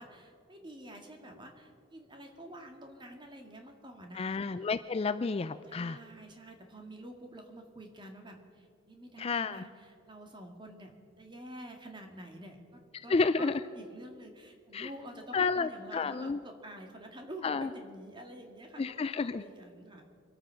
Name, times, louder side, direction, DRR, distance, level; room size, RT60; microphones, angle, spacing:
voice 1, 0.0-4.4 5.7-20.1, right 1 dB, 25° right, 4 dB, 1.8 m, -48 dB
voice 2, 4.2-6.0 9.2-9.6 13.1-13.6 14.7-14.9 15.3-16.4 17.4-17.7 18.8-19.4, left 4 dB, 30° left, 12 dB, 0.3 m, -30 dB
25.0 x 8.9 x 5.7 m, 2.3 s
head